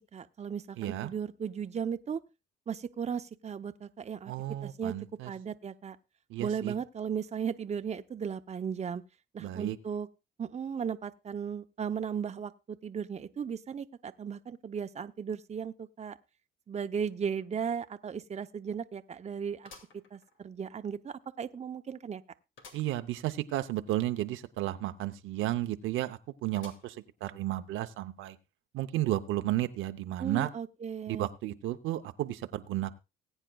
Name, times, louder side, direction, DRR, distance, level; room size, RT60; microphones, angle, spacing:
voice 1, 0.0-2.2 2.7-4.3 4.6-4.9 5.3-6.0 6.4-9.0 9.3-10.1 10.4-16.2 16.7-19.7 20.1-22.2 30.2-31.3, right 7 dB, 35° right, 9 dB, 0.7 m, -36 dB
voice 2, 0.8-1.1 4.3-5.3 6.3-6.7 9.4-9.8 22.7-26.9 27.2-28.4 28.7-30.5 31.1-32.9, right 14 dB, 85° right, 9 dB, 0.7 m, -33 dB
sound 1, 17.4-17.5 17.9-18.0 19.6-20.7 21.2-21.3 22.6-23.0 23.4-23.5 23.7-23.8 26.6-27.2 27.8-27.9 28.8-28.9, left 4 dB, 80° left, 2.2 m, -54 dB
20.0 x 9.0 x 2.3 m, 0.27 s
cardioid pair, 90°, 20 cm